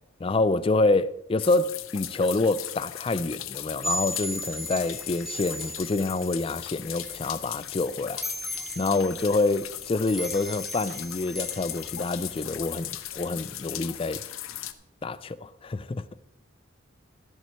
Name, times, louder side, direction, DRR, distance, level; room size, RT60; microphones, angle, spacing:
voice 1, 0.2-8.2 8.8-14.2 15.0-16.0, left 3 dB, 25° left, 0.3 m, -27 dB
sound 1, 1.4-14.7, left 13 dB, 90° left, 0.7 m, -38 dB
sound 2, 3.8-13.4, right 1 dB, ahead, 0.9 m, -38 dB
12.5 x 11.0 x 3.1 m
head